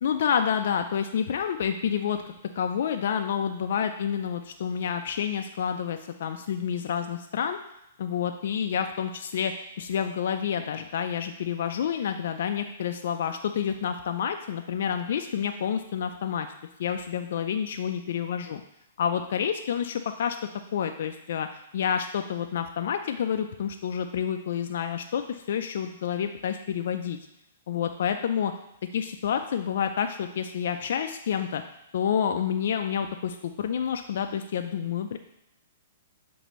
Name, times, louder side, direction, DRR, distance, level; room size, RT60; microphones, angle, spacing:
voice 1, 0.0-7.6 8.0-16.5 16.8-18.6 19.0-20.4 20.7-21.5 21.7-27.2 27.7-28.5 28.9-31.6 31.9-35.2, left 8 dB, 65° left, 6 dB, 0.3 m, -29 dB
6.5 x 2.6 x 3.1 m, 0.84 s
hypercardioid pair, 140°, 0 cm